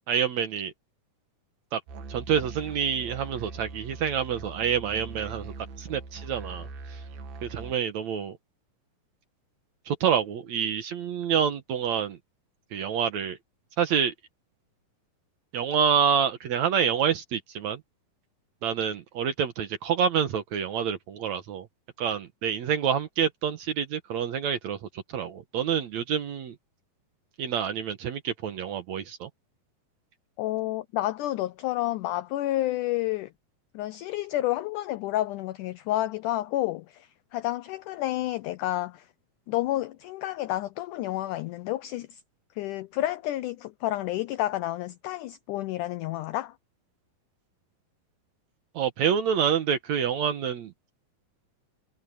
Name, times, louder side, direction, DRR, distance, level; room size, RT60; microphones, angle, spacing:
voice 1, 0.1-0.7 1.7-1.8 2.1-5.5 5.8-7.0 7.4-8.4 9.9-12.2 12.7-13.4 13.8-14.1 15.5-17.8 18.6-21.7 22.0-24.8 25.1-26.6 27.4-29.3 48.8-50.7, right 8 dB, 65° right, 2.0 m, -27 dB
Musical instrument, 1.9-7.7, right 4 dB, 80° right, 3.9 m, -41 dB
voice 2, 30.4-33.3 33.7-39.1 39.5-42.2 42.6-46.5, left 15 dB, 85° left, 1.8 m, -30 dB
omnidirectional pair, 4.3 m